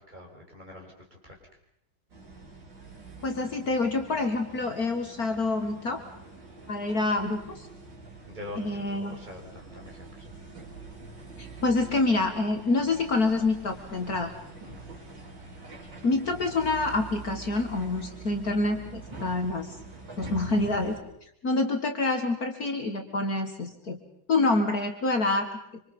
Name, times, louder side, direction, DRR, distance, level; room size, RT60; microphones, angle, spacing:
voice 1, 0.0-1.4 8.3-10.3 14.6-14.9, left 1 dB, 20° right, 0 dB, 5.8 m, -44 dB
sound 1, 2.1-21.0, right 3 dB, 70° right, 5.0 m, -45 dB
voice 2, 3.2-6.0 6.7-7.7 8.6-9.2 11.4-14.3 16.0-19.8 20.2-21.0 21.4-24.0 24.3-25.5, left 3 dB, 50° left, 5 dB, 2.2 m, -27 dB
26.5 x 26.5 x 5.5 m, 0.75 s
omnidirectional pair, 2.1 m